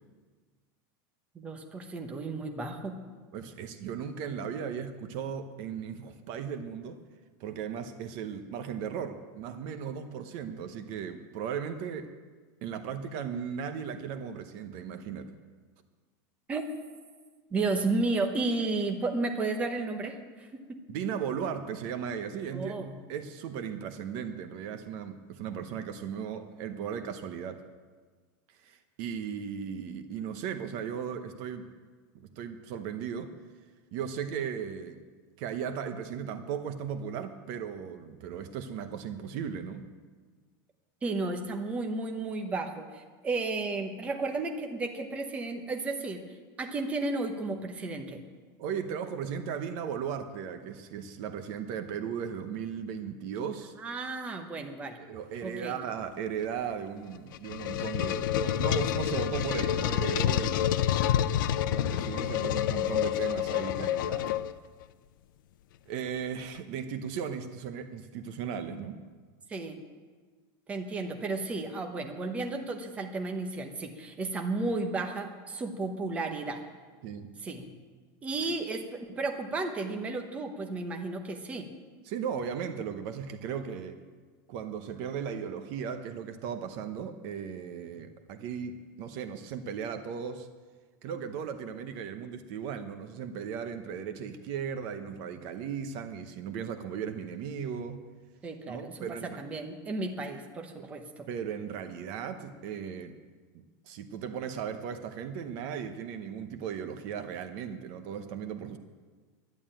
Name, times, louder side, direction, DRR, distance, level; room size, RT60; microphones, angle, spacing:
voice 1, 1.3-3.0 16.5-16.6 17.5-20.8 22.5-22.9 41.0-46.2 46.6-48.2 53.8-55.0 55.4-55.8 69.5-69.8 70.7-76.6 77.4-77.7 78.2-81.7 98.4-99.0 99.4-101.3, right 3 dB, 10° right, 4 dB, 0.9 m, -33 dB
voice 2, 3.3-7.0 7.4-12.1 12.6-15.3 20.9-27.7 28.5-31.7 32.1-33.3 33.9-35.0 35.4-39.9 48.6-53.7 55.0-60.7 61.0-61.4 61.7-64.4 65.9-69.0 77.0-77.3 82.0-84.0 84.5-90.5 91.0-98.0 98.7-99.4 101.3-103.2 103.5-108.8, right 7 dB, 40° right, 9 dB, 0.8 m, -36 dB
sound 1, 57.1-64.8, left 11 dB, 70° left, 0.6 m, -28 dB
11.0 x 11.0 x 8.8 m, 1.5 s
supercardioid pair, 175°, 11 cm